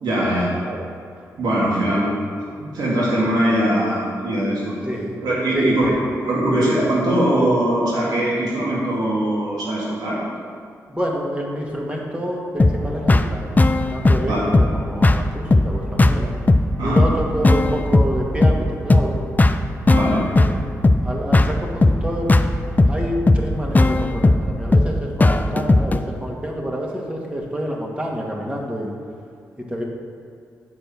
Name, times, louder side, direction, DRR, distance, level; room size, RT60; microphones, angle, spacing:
voice 1, 0.0-0.5 1.4-2.1 2.6-4.7 5.2-5.9 6.2-10.2 14.3-14.5 16.8-17.0 19.9-20.3, right 1 dB, 70° right, -7 dB, 2.3 m, -21 dB
voice 2, 4.8-5.2 5.5-5.9 10.9-13.6 13.9-16.3 16.8-19.2 20.3-20.6 21.0-22.4 22.9-28.9 29.7-29.8, equal, 15° right, -2 dB, 2.1 m, -27 dB
sound 1, 12.6-26.0, left 2 dB, 25° left, 0.5 m, -17 dB
7.8 x 4.5 x 7.1 m, 2.4 s
supercardioid pair, 45°, 7 cm